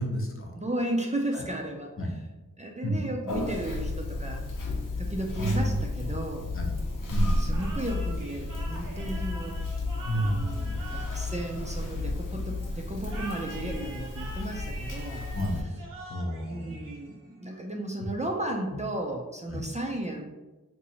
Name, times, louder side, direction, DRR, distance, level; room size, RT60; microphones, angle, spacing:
voice 1, 0.0-0.5 1.3-1.4 2.0-2.1 2.8-3.0 5.4-5.8 6.0-6.1 6.5-6.7 7.1-7.8 10.0-10.8 15.3-15.6 16.1-16.8 18.7-18.8 19.5-19.7, equal, 40° left, 1 dB, 0.7 m, -31 dB
voice 2, 0.6-1.9 2.6-4.5 5.0-6.5 7.4-9.6 10.1-15.2 16.5-20.2, right 1 dB, 20° right, 0 dB, 0.4 m, -34 dB
Conversation, 3.3-15.6, left 2 dB, 75° left, 0.8 m, -32 dB
sound 1, 7.5-12.3 13.0-17.4, right 2 dB, 90° right, 0.7 m, -44 dB
2.8 x 2.6 x 4.1 m, 1.1 s
wide cardioid pair, 65°, 32 cm